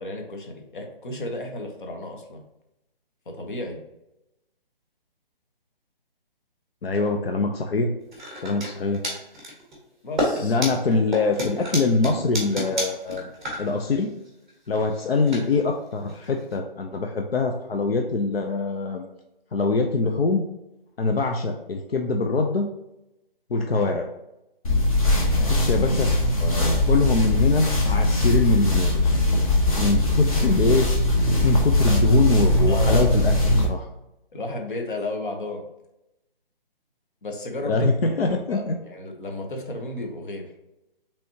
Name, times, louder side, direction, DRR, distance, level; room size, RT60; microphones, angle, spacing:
voice 1, 0.0-2.4 3.3-3.8 10.0-10.6 25.3-25.6 26.4-26.7 32.7-33.1 34.3-35.6 37.2-37.9 38.2-40.5, left 1 dB, 55° left, 3 dB, 1.1 m, -33 dB
voice 2, 6.8-7.9 8.4-9.0 10.4-13.3 13.6-14.1 14.7-19.0 19.5-20.4 21.0-22.7 23.5-24.1 25.4-26.1 26.9-29.2 29.7-30.9 31.4-33.9 37.7-38.8, left 3 dB, 85° left, 3 dB, 0.7 m, -23 dB
sound 1, 8.1-8.7 8.9-9.8 10.2-16.5, equal, ahead, 0.8 m, -30 dB
sound 2, 24.6-33.7, left 1 dB, 35° left, 1.0 m, -20 dB
5.5 x 3.5 x 2.8 m, 0.91 s
hypercardioid pair, 165°, 29 cm